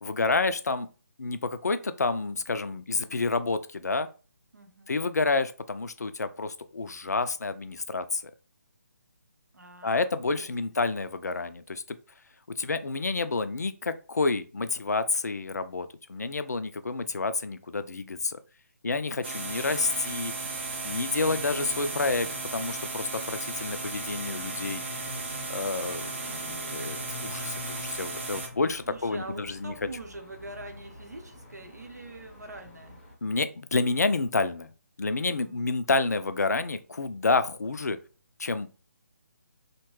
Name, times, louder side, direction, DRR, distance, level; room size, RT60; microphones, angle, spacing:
voice 1, 0.0-0.9 1.2-4.1 4.9-8.2 9.8-12.0 12.5-18.4 18.8-20.3 20.8-24.8 25.5-29.7 33.2-34.7 35.0-38.0 38.4-38.7, left 3 dB, 70° left, 11 dB, 0.3 m, -29 dB
voice 2, 4.5-5.0 9.5-10.5 28.9-33.0 35.2-35.7, right 2 dB, 75° right, 5 dB, 0.7 m, -44 dB
sound 1, 19.2-28.5, right 3 dB, 40° right, 0.5 m, -35 dB
sound 2, 19.4-33.2, left 3 dB, 10° left, 0.6 m, -47 dB
2.8 x 2.2 x 3.0 m, 0.34 s
figure-of-eight pair, 145°, 9 cm